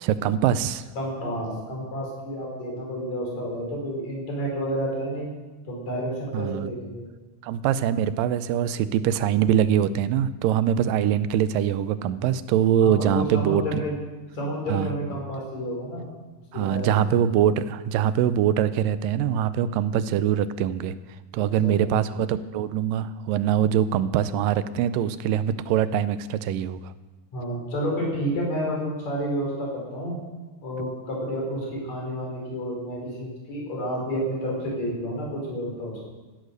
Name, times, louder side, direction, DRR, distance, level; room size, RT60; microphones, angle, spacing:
voice 1, 0.0-0.8 6.3-6.7 7.4-13.6 14.7-14.9 16.5-20.9 21.3-26.9, right 10 dB, 85° right, 14 dB, 2.3 m, -23 dB
voice 2, 1.0-5.3 5.7-7.1 12.8-14.0 14.3-16.1 16.5-17.2 21.4-21.9 27.3-30.2 30.6-36.0, equal, 50° left, -2 dB, 5.8 m, -30 dB
16.0 x 10.5 x 6.7 m, 1.2 s
omnidirectional pair, 3.9 m